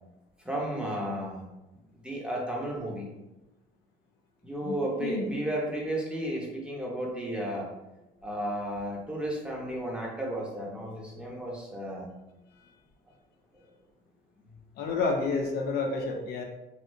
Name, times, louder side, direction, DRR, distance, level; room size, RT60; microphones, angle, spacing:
voice 1, 0.4-1.4 2.0-3.1 4.4-7.7 8.2-12.1, right 1 dB, 5° right, -3 dB, 0.9 m, -33 dB
voice 2, 14.8-16.4, left 3 dB, 70° left, 2 dB, 0.5 m, -29 dB
3.2 x 2.7 x 2.6 m, 0.98 s
cardioid pair, 110°, 17 cm